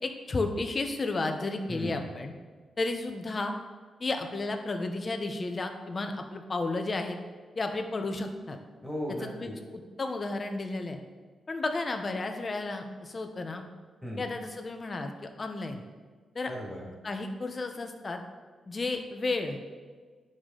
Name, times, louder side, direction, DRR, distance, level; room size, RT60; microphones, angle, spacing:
voice 1, 0.0-2.3 2.8-3.5 4.0-7.2 7.5-8.6 9.4-9.5 10.0-11.0 11.5-13.7 14.2-15.8 16.3-16.5 16.9-18.2 18.7-19.6, left 3 dB, 35° left, 5 dB, 0.9 m, -32 dB
voice 2, 1.7-2.1 8.8-9.5 14.0-14.3 16.4-16.8, equal, 5° right, -3 dB, 2.3 m, -36 dB
9.3 x 6.5 x 3.9 m, 1.5 s
cardioid pair, 95°, 0 cm